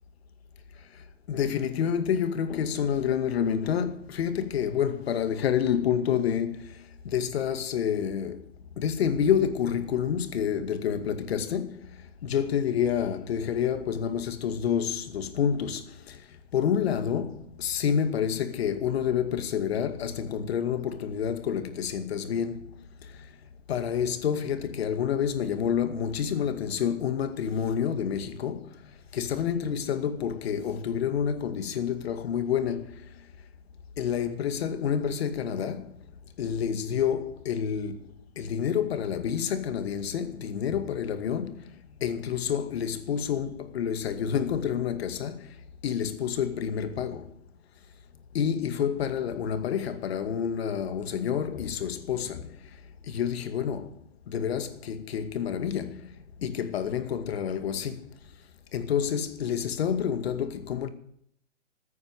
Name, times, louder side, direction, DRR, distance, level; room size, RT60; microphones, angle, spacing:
voice 1, 0.9-8.5 8.8-23.3 23.7-33.1 34.0-36.0 36.4-38.1 38.4-41.7 42.0-47.3 48.3-52.6 53.0-54.0 54.3-56.1 56.4-58.1 58.7-60.9, left 8 dB, 60° left, 2.2 m, -29 dB
15.0 x 9.6 x 8.1 m
hypercardioid pair, 135°, 36 cm